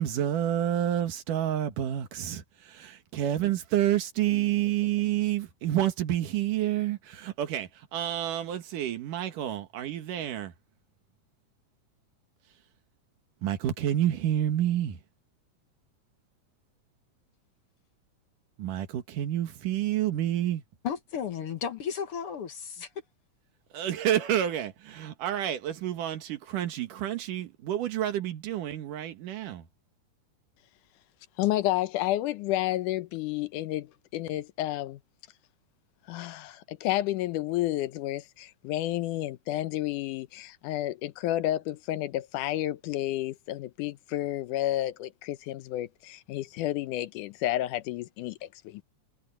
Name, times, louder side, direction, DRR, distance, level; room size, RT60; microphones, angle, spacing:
voice 1, 0.0-10.5 13.4-15.0 18.6-20.6 23.7-29.6, right 11 dB, 85° right, 3.1 m, -29 dB
voice 2, 20.8-22.9, left 7 dB, 60° left, 1.7 m, -34 dB
voice 3, 31.4-35.0 36.1-48.8, left 14 dB, 85° left, 2.3 m, -31 dB
omnidirectional pair, 3.6 m